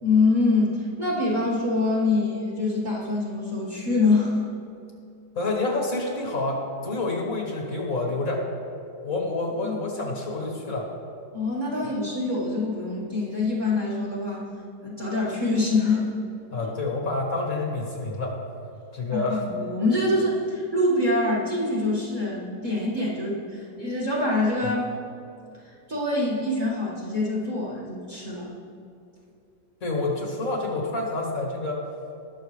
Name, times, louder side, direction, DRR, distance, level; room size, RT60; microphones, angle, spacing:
voice 1, 0.0-4.4 9.6-9.8 11.3-14.5 14.8-16.2 16.6-16.7 19.1-24.9 25.9-28.5, left 2 dB, 30° right, -5 dB, 1.8 m, -25 dB
voice 2, 5.4-8.4 9.0-10.9 16.5-18.4 18.9-19.5 29.8-31.8, left 2 dB, 55° left, -1 dB, 1.8 m, -28 dB
19.0 x 6.4 x 3.3 m, 2.6 s
omnidirectional pair, 1.8 m